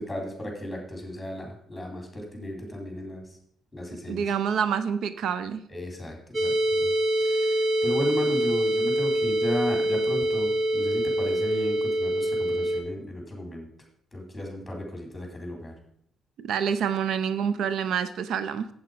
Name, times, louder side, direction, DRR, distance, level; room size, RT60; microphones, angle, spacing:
voice 1, 0.0-3.3 3.7-4.2 5.7-6.9 7.2-13.7 14.1-15.7, left 1 dB, 10° left, 2 dB, 3.7 m, -34 dB
voice 2, 4.1-5.6 16.4-18.7, right 7 dB, 75° right, 13 dB, 0.6 m, -27 dB
sound 1, 6.3-12.8, right 1 dB, 40° right, 1.5 m, -25 dB
8.1 x 7.8 x 5.2 m, 0.68 s
cardioid pair, 100°, 0 cm